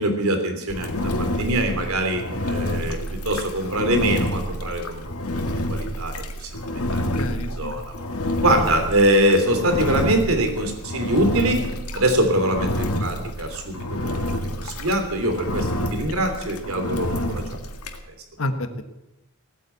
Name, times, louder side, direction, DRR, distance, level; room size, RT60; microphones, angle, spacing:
voice 1, 0.0-5.4 5.7-7.0 7.6-7.8 8.4-11.6 11.9-17.4, right 1 dB, 75° right, 6 dB, 3.1 m, -23 dB
Engine, 0.7-18.0, left 1 dB, 85° left, 1.9 m, -28 dB
voice 2, 6.8-7.8 18.4-18.8, left 1 dB, 70° left, 8 dB, 1.4 m, -30 dB
17.5 x 9.3 x 8.3 m, 0.98 s
head